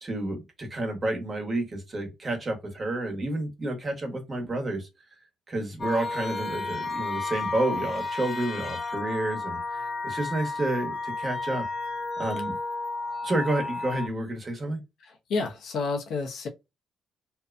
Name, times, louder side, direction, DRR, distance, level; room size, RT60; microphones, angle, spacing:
voice 1, 0.0-4.9 5.5-11.6 12.2-12.6 13.2-14.8, right 1 dB, 30° right, 1.1 m, -30 dB
sound 1, 5.8-14.1, left 3 dB, 40° left, 0.6 m, -32 dB
voice 2, 15.0-16.5, left 4 dB, 70° left, 0.7 m, -30 dB
2.6 x 2.2 x 2.4 m
cardioid pair, 90°, 0 cm